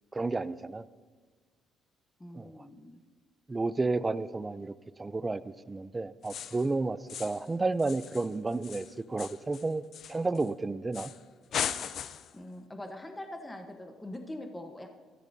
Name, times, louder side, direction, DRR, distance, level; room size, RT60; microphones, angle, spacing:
voice 1, 0.1-0.8 2.3-2.5 3.5-4.7 5.0-9.8 10.1-11.1, right 3 dB, 15° right, 15 dB, 0.4 m, -31 dB
voice 2, 2.2-3.0 12.3-14.9, left 1 dB, 10° left, 4 dB, 1.0 m, -43 dB
sound 1, 6.2-6.7 7.1-7.5 7.8-10.5 10.9-11.2 11.5-12.4, left 8 dB, 55° left, 0.5 m, -38 dB
21.5 x 14.0 x 2.7 m, 1.5 s
cardioid pair, 120°, 0 cm